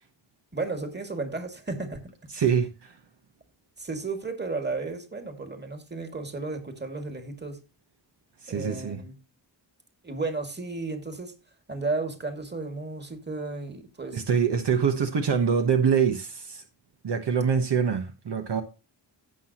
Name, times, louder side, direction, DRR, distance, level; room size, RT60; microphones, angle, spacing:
voice 1, 0.5-2.0 3.8-7.6 8.5-9.2 10.0-11.3 11.7-14.2, right 3 dB, 25° right, 2.2 m, -33 dB
voice 2, 2.3-3.0 8.4-9.0 14.1-16.6 17.0-18.6, right 6 dB, 65° right, 1.2 m, -25 dB
16.0 x 6.0 x 2.9 m
wide cardioid pair, 100°, 45 cm